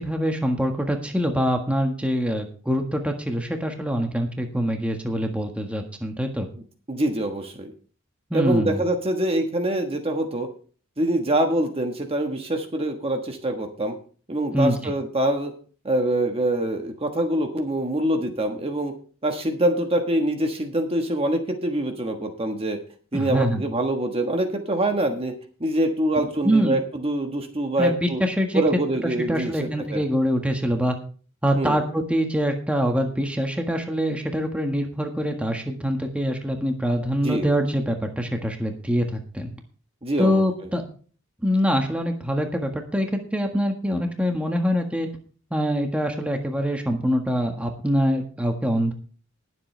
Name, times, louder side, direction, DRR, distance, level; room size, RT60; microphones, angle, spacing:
voice 1, 0.0-6.5 8.3-8.8 14.5-14.9 23.1-23.6 26.4-26.8 27.8-28.6 29.0-31.0 31.4-39.5 40.2-40.8 41.4-43.1 43.3-45.1 45.5-48.9, equal, 5° right, 3 dB, 1.5 m, -24 dB
voice 2, 6.9-7.7 8.3-10.5 11.0-14.0 14.3-15.5 15.8-18.9 19.2-22.8 23.1-25.3 25.6-28.2 28.5-30.0 31.6-31.8 37.2-37.5 40.0-40.4, right 1 dB, 30° right, 5 dB, 1.4 m, -24 dB
20.0 x 7.7 x 3.3 m, 0.41 s
head